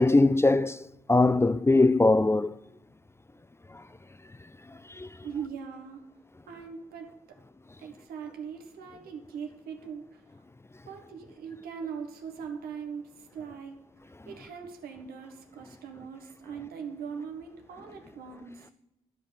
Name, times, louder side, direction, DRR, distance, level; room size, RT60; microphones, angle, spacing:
voice 1, 0.0-2.5 5.0-5.1, left 2 dB, 15° left, 0.4 m, -21 dB
voice 2, 5.2-6.0 6.5-7.1 7.8-10.2 10.9-13.8 14.2-18.7, right 6 dB, 75° right, 1.5 m, -40 dB
12.0 x 5.2 x 5.2 m
hypercardioid pair, 40°, 15 cm